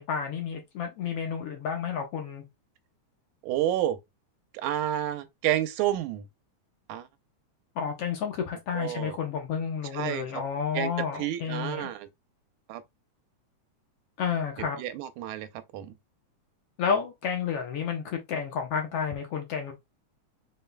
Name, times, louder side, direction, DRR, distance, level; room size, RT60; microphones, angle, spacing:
voice 1, 0.0-2.4 7.7-11.9 14.2-14.8 16.8-19.7, left 7 dB, 65° left, 1.7 m, -31 dB
voice 2, 3.4-4.0 4.5-6.3 6.9-7.1 8.7-9.2 9.9-10.4 10.7-12.1 12.7-12.8 14.6-15.9, right 12 dB, 90° right, 2.1 m, -30 dB
5.4 x 3.7 x 2.2 m
omnidirectional pair, 3.4 m